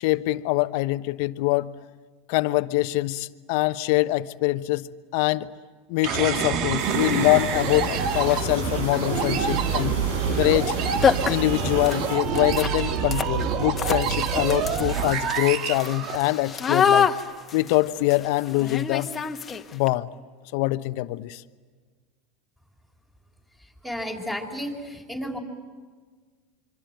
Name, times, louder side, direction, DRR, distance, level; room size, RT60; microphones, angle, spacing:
voice 1, 0.0-1.7 2.3-4.9 5.1-5.5 5.9-10.0 10.4-10.7 11.3-17.1 17.5-19.1 19.7-20.1 20.5-21.4, left 18 dB, 65° left, 13 dB, 1.0 m, -24 dB
sound 1, 6.0-16.7, right 7 dB, 55° right, 1.9 m, -27 dB
sound 2, 6.8-12.2, right 2 dB, 85° right, 7.8 m, -32 dB
sound 3, 7.5-7.6 8.2-8.6 10.3-10.4 10.7-10.8 11.0-19.9, left 7 dB, 25° left, 1.6 m, -27 dB
voice 2, 23.6-25.4, equal, 10° right, 1 dB, 4.8 m, -33 dB
26.0 x 24.5 x 9.2 m, 1.5 s
hypercardioid pair, 100°, 0 cm